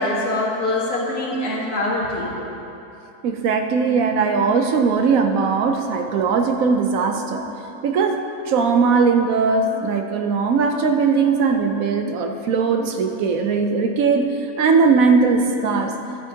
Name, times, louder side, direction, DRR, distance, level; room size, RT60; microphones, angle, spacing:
voice 1, 0.0-2.3, left 1 dB, 70° left, -5 dB, 2.1 m, -23 dB
voice 2, 3.2-7.5 7.8-14.3 14.6-15.9, right 5 dB, 70° right, 5 dB, 1.0 m, -19 dB
13.0 x 8.1 x 2.8 m, 2.8 s
omnidirectional pair, 1.6 m